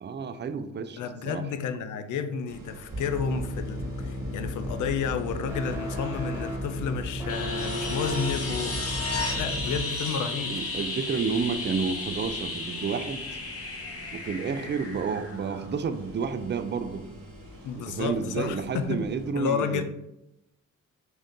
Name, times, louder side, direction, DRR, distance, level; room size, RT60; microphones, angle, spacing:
voice 1, 0.0-1.5 9.3-9.4 10.5-13.4 14.1-17.1 17.7-19.8, right 5 dB, 35° right, 10 dB, 0.4 m, -31 dB
voice 2, 1.0-8.8 9.3-10.5 17.6-19.0 19.4-19.8, left 6 dB, 70° left, 8 dB, 0.4 m, -31 dB
sound 1, 2.5-19.3, equal, 80° right, 1.0 m, -47 dB
sound 2, 2.9-9.8, left 1 dB, 10° right, 1.3 m, -33 dB
sound 3, 7.3-16.0 18.3-18.4, left 3 dB, 45° left, 1.0 m, -34 dB
3.8 x 2.6 x 3.6 m, 0.87 s
cardioid pair, 70°, 32 cm